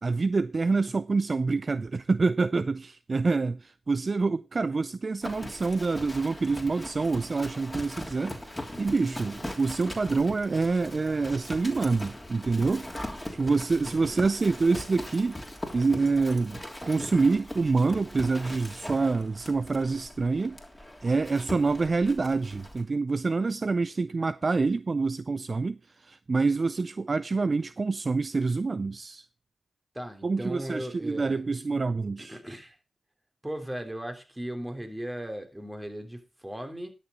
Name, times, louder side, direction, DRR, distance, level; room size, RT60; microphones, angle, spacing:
voice 1, 0.0-12.9 13.3-15.4 15.7-20.6 21.0-29.2 30.2-32.4, right 4 dB, 50° right, 0.4 m, -26 dB
Livestock farm animals working animals, 5.2-22.8, left 1 dB, 10° left, 3.1 m, -40 dB
voice 2, 9.0-9.4 13.8-14.2 29.9-31.4 32.2-32.8 33.4-36.9, right 1 dB, 15° right, 3.3 m, -37 dB
11.5 x 6.8 x 5.2 m
supercardioid pair, 40°, 0 cm